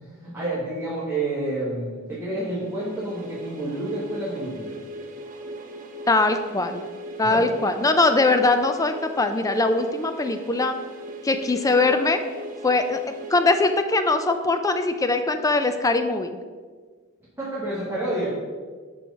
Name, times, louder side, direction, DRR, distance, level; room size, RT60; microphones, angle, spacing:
voice 1, 0.0-4.8 7.3-7.5 17.4-18.3, right 2 dB, 10° right, -10 dB, 1.6 m, -29 dB
sound 1, 2.4-14.3, right 1 dB, 40° right, 0.8 m, -39 dB
voice 2, 6.1-6.8 7.2-10.8 11.2-12.2 12.6-13.0 13.3-16.3, left 3 dB, 15° left, 7 dB, 0.4 m, -21 dB
6.3 x 4.6 x 5.3 m, 1.5 s
head